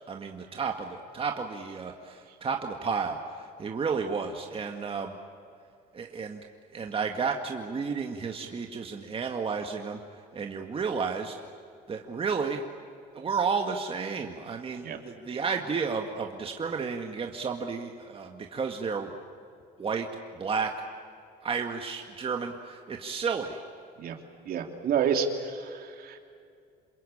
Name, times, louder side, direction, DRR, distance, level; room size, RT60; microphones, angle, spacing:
voice 1, 0.1-5.2 5.9-6.4 6.7-10.0 10.3-11.3 11.9-12.6 13.1-19.1 19.8-20.1 20.4-20.7 21.4-23.6, right 5 dB, 35° right, 3 dB, 2.0 m, -32 dB
voice 2, 24.4-26.2, right 7 dB, 60° right, 4 dB, 3.2 m, -29 dB
28.0 x 21.5 x 8.8 m, 2.3 s
cardioid pair, 110°, 17 cm